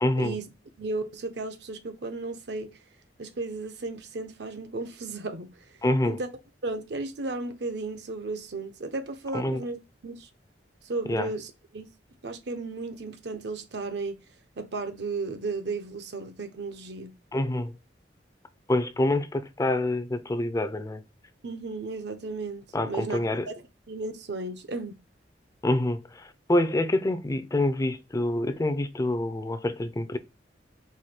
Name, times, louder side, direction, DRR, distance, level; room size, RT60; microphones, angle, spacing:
voice 1, 0.0-0.4 5.8-6.2 9.3-9.6 11.1-11.3 17.3-17.8 18.7-21.0 22.7-23.5 25.6-30.2, left 1 dB, 20° left, 0.4 m, -26 dB
voice 2, 0.8-2.8 3.2-5.5 6.0-6.3 6.6-10.3 10.8-11.9 12.2-14.2 14.6-17.1 21.4-23.5 23.9-25.0, right 3 dB, 65° right, 0.7 m, -34 dB
4.7 x 2.2 x 4.2 m
head